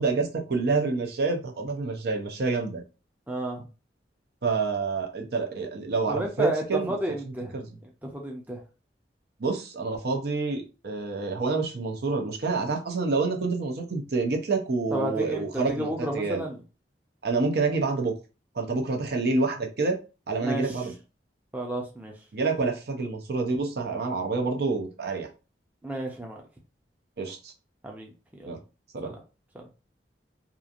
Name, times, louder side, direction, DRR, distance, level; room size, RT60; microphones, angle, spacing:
voice 1, 0.0-2.8 4.4-6.9 7.5-7.7 9.4-16.4 17.2-18.1 18.6-20.0 20.3-20.9 22.3-25.3 27.2-27.5 28.5-28.6 28.9-29.1, right 4 dB, 60° right, 3 dB, 0.6 m, -27 dB
voice 2, 3.3-3.6 6.1-7.6 8.0-8.6 14.9-16.6 20.4-20.9 21.5-22.1 25.8-26.4 27.8-28.5 29.0-29.2 29.5-29.6, right 1 dB, 10° right, 0 dB, 0.5 m, -32 dB
3.0 x 2.4 x 2.4 m, 0.32 s
head